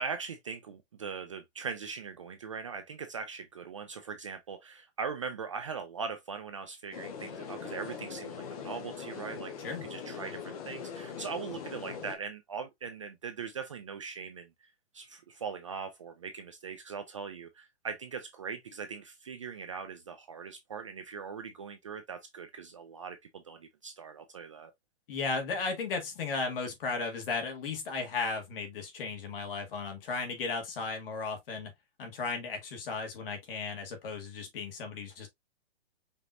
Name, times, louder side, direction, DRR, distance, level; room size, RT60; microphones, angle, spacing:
voice 1, 0.0-14.5 14.9-24.7, right 5 dB, 30° right, 0.4 m, -40 dB
sound 1, 6.9-12.2, left 6 dB, 35° left, 0.8 m, -41 dB
voice 2, 25.1-31.7 32.0-35.3, left 4 dB, 55° left, 1.7 m, -35 dB
5.2 x 2.8 x 2.4 m
hypercardioid pair, 160°, 33 cm